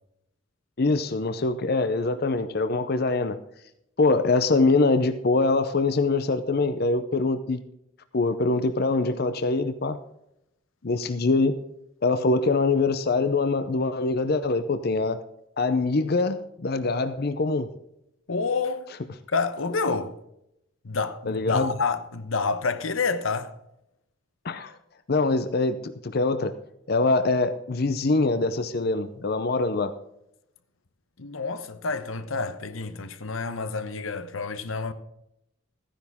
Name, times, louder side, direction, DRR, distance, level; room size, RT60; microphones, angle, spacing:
voice 1, 0.8-3.4 4.0-7.6 8.1-10.0 10.8-11.6 12.0-15.2 15.6-17.7 21.3-21.7 24.4-24.8 25.1-26.5 26.9-30.0, left 3 dB, 50° left, 0.6 m, -24 dB
voice 2, 18.3-18.9 19.3-20.2 20.8-23.6 31.2-34.9, left 4 dB, 90° left, 1.0 m, -28 dB
14.0 x 10.0 x 3.6 m
head